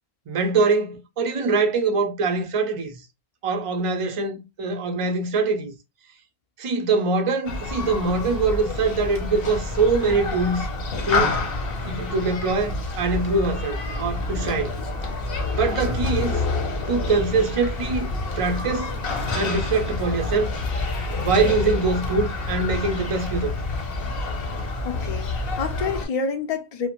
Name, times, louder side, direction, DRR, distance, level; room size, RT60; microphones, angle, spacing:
voice 1, 0.3-3.0 3.4-5.7 6.6-10.7 11.1-11.4 11.8-14.8 15.5-16.4 16.9-18.9 19.3-20.5 21.2-23.5, right 3 dB, 50° right, 0.4 m, -23 dB
Human group actions, 7.4-26.1, left 3 dB, 70° left, 0.9 m, -28 dB
voice 2, 24.8-26.9, left 5 dB, 50° left, 0.5 m, -28 dB
2.4 x 2.1 x 2.8 m
omnidirectional pair, 1.1 m